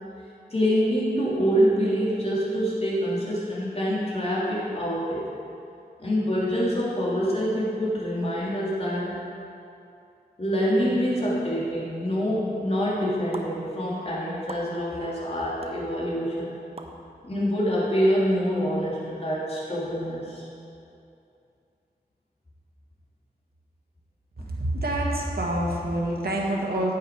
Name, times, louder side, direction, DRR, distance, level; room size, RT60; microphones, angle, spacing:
voice 1, 0.5-5.4 6.0-9.1 10.4-16.5 17.2-20.4, equal, 35° left, -7 dB, 2.8 m, -26 dB
sound 1, 13.3-13.5 14.5-14.7 15.6-15.7 16.8-16.9, right 3 dB, 35° right, 0.8 m, -38 dB
voice 2, 24.7-26.9, right 1 dB, 70° right, -2 dB, 1.8 m, -26 dB
9.4 x 9.3 x 4.8 m, 2.6 s
wide cardioid pair, 80°, 17 cm